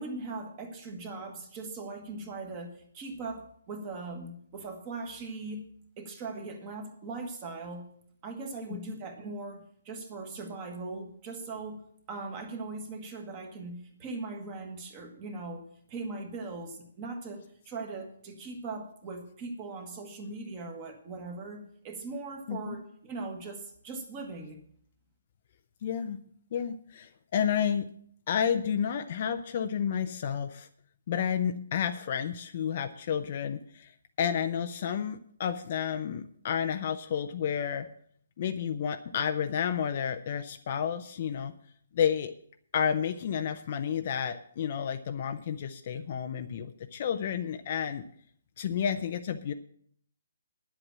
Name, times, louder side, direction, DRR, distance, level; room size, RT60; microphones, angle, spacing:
voice 1, 0.0-5.7 6.0-7.8 8.2-24.6, right 3 dB, 15° right, 4 dB, 1.4 m, -40 dB
voice 2, 25.8-26.2 26.5-27.9 28.3-30.7 31.1-37.9 38.4-41.5 41.9-42.3 42.7-48.0 48.6-49.5, left 8 dB, 30° left, 8 dB, 0.5 m, -31 dB
10.0 x 7.9 x 7.4 m, 0.65 s
hypercardioid pair, 175°, 0 cm